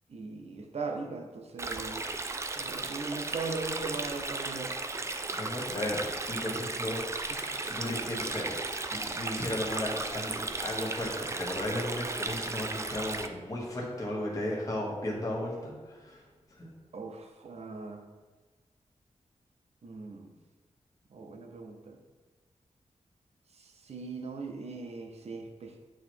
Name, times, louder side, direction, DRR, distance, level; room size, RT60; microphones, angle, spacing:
voice 1, 0.1-2.1 2.6-4.7 7.3-7.4 16.9-18.1 19.8-20.3 21.1-22.0 23.6-25.7, right 4 dB, 60° right, 4 dB, 0.7 m, -39 dB
Stream, 1.6-13.3, right 3 dB, 25° right, 0.3 m, -35 dB
voice 2, 5.4-6.0 6.3-16.2 16.5-16.7, left 1 dB, 25° left, -4 dB, 1.2 m, -35 dB
8.6 x 3.1 x 4.4 m, 1.3 s
wide cardioid pair, 165°, 12 cm